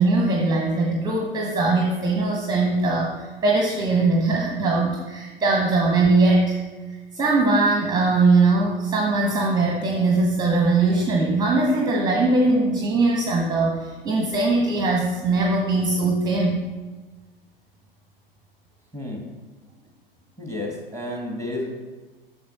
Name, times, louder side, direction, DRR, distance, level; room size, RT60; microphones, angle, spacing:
voice 1, 0.0-6.6 7.1-16.6, right 3 dB, 15° right, 0 dB, 0.8 m, -21 dB
voice 2, 20.4-21.7, left 1 dB, 10° left, 1 dB, 1.4 m, -31 dB
6.4 x 6.4 x 4.1 m, 1.3 s
figure-of-eight pair, 90°, 29 cm